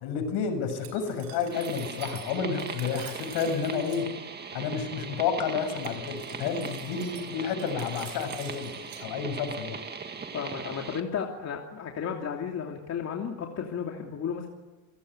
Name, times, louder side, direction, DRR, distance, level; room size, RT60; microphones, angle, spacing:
voice 1, 0.0-4.1 4.5-8.7 9.0-9.8, left 6 dB, 60° left, 7 dB, 7.4 m, -30 dB
Glass, 0.7-4.0 5.7-9.0, right 12 dB, 75° right, 5.7 m, -48 dB
sound 1, 1.5-11.0, right 5 dB, 20° right, 2.1 m, -39 dB
voice 2, 10.3-14.5, left 7 dB, 35° left, 1 dB, 3.0 m, -33 dB
28.5 x 17.0 x 9.7 m, 1.2 s
cardioid pair, 135°, 44 cm